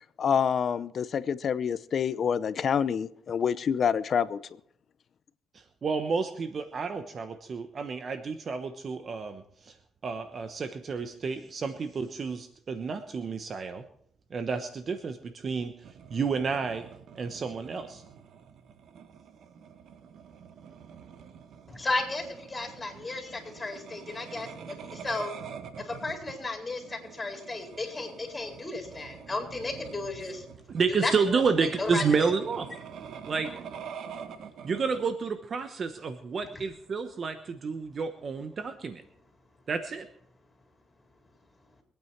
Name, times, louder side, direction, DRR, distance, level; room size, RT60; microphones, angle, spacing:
voice 1, 0.2-4.4, left 7 dB, 55° left, 16 dB, 0.7 m, -27 dB
voice 2, 5.8-9.7 10.0-13.8 14.3-15.7 16.1-16.9 17.1-18.0 30.7-32.7 33.3-33.5 34.6-39.0 39.7-40.1, right 5 dB, 45° right, 9 dB, 1.1 m, -30 dB
sound 1, 15.8-35.0, right 7 dB, 70° right, 1.3 m, -46 dB
voice 3, 21.7-25.3 25.8-32.3 36.5-36.6, left 3 dB, 20° left, 2 dB, 4.5 m, -34 dB
24.0 x 9.2 x 4.6 m, 0.68 s
cardioid pair, 90°, 0 cm